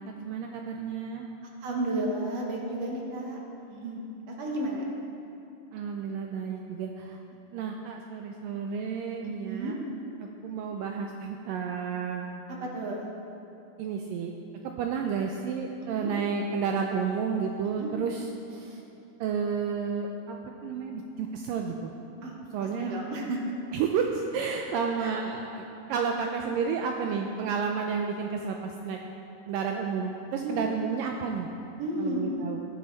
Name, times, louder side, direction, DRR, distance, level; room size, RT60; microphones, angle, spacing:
voice 1, 0.1-1.3 5.7-7.2 7.5-9.8 10.4-12.4 13.8-14.3 14.8-18.2 18.5-18.8 19.2-20.4 20.6-21.9 22.5-22.9 23.7-25.6 25.9-29.0 29.5-31.5 32.0-32.7, right 6 dB, 80° right, 2 dB, 2.1 m, -31 dB
voice 2, 1.6-3.4 3.7-4.0 4.4-4.8 9.4-9.8 12.5-13.1 16.0-16.1 17.6-17.9 22.2-22.3 22.8-23.5 25.0-25.2 27.0-27.2 30.4-30.6 31.8-32.4, right 1 dB, 60° right, -1 dB, 1.9 m, -32 dB
15.5 x 11.5 x 4.1 m, 2.8 s
omnidirectional pair, 4.5 m